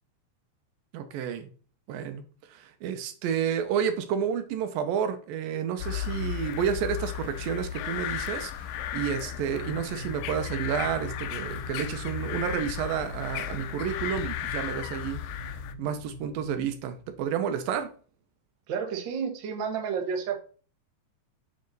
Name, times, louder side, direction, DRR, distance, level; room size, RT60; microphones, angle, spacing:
voice 1, 0.9-1.5 1.9-2.2 2.5-15.2 15.8-17.9, right 8 dB, 85° right, 2.6 m, -30 dB
sound 1, 5.8-15.7, left 11 dB, 85° left, 2.3 m, -35 dB
sound 2, 9.1-17.8, right 1 dB, 40° left, 3.8 m, -44 dB
voice 2, 18.7-20.4, right 6 dB, 65° right, 1.2 m, -31 dB
8.5 x 4.3 x 4.0 m
omnidirectional pair, 4.0 m